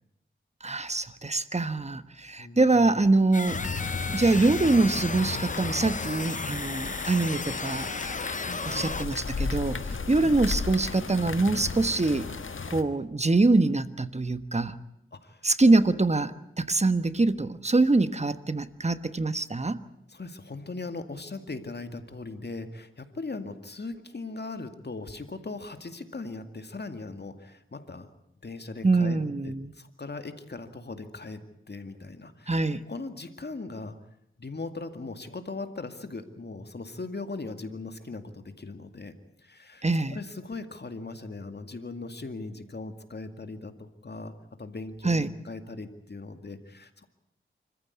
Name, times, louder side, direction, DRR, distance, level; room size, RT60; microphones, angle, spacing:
voice 1, 0.6-3.6 4.1-7.9 8.7-12.3 12.7-14.7 15.4-19.8 28.8-29.7 32.5-32.8 39.8-40.2 45.0-45.3, right 2 dB, 30° right, 12 dB, 1.3 m, -24 dB
voice 2, 2.4-2.8 6.3-6.5 8.5-8.9 10.0-10.4 15.1-15.4 20.1-28.1 28.4-29.2 29.4-34.0 34.4-44.3 44.6-47.1, left 3 dB, 55° left, 8 dB, 2.2 m, -39 dB
sound 1, 3.3-9.1, left 4 dB, 40° left, 0.9 m, -35 dB
sound 2, 3.5-12.8, left 4 dB, 70° left, 1.6 m, -35 dB
25.5 x 14.5 x 9.6 m, 0.78 s
wide cardioid pair, 60°, 21 cm